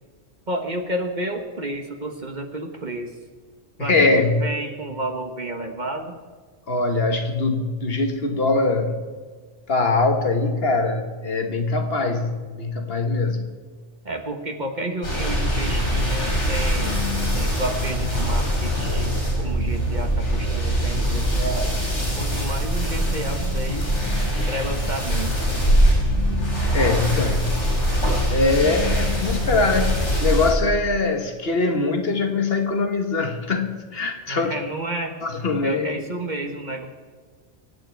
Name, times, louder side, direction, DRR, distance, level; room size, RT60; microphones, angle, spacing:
voice 1, 0.5-3.2 3.8-6.2 14.0-21.8 22.2-24.0 24.5-25.3 34.3-35.2 35.6-36.9, right 1 dB, 40° right, 4 dB, 1.4 m, -31 dB
voice 2, 3.8-4.4 6.7-9.0 9.7-13.5 26.7-27.6 28.3-34.5 35.2-36.1, left 3 dB, 60° left, 6 dB, 1.6 m, -22 dB
sound 1, 15.0-30.5, equal, 90° left, 6.5 m, -22 dB
24.5 x 9.3 x 4.6 m, 1.5 s
omnidirectional pair, 1.2 m